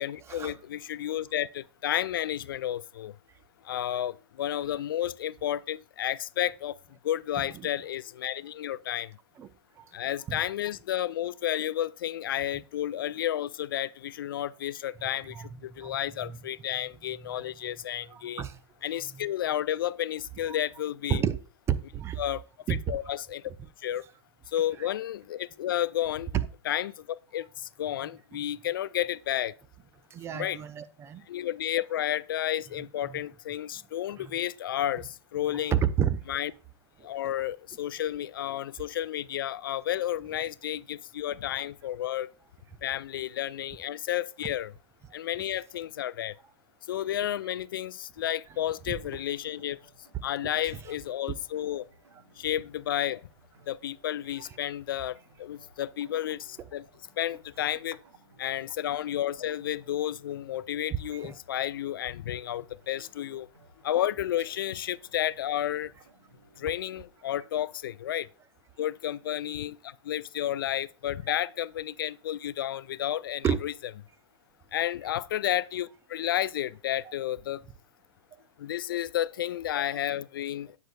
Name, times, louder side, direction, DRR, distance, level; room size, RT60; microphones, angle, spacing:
voice 1, 0.0-3.1 3.6-6.8 7.0-9.1 9.9-18.4 18.8-21.2 22.2-22.4 22.9-23.4 23.8-24.0 24.5-26.3 26.6-29.5 30.3-30.6 31.3-35.8 36.3-36.5 37.0-42.3 42.8-44.7 45.1-46.4 46.9-49.8 50.2-51.9 52.4-53.2 53.7-56.8 57.2-58.0 58.4-63.5 63.8-65.9 66.6-68.3 68.8-73.7 74.7-77.6 78.6-80.8, left 12 dB, 50° left, 0.4 m, -31 dB
voice 2, 15.3-16.0 17.3-17.4 18.1-18.6 21.1-21.4 21.7-22.2 22.7-23.0 26.3-26.4 30.1-31.2 34.2-34.3 35.7-36.2 61.2-61.3 73.4-73.6, right 8 dB, 20° right, 0.5 m, -29 dB
sound 1, 48.5-66.7, right 2 dB, 70° right, 2.3 m, -60 dB
17.5 x 6.5 x 2.4 m
figure-of-eight pair, 105°, 15 cm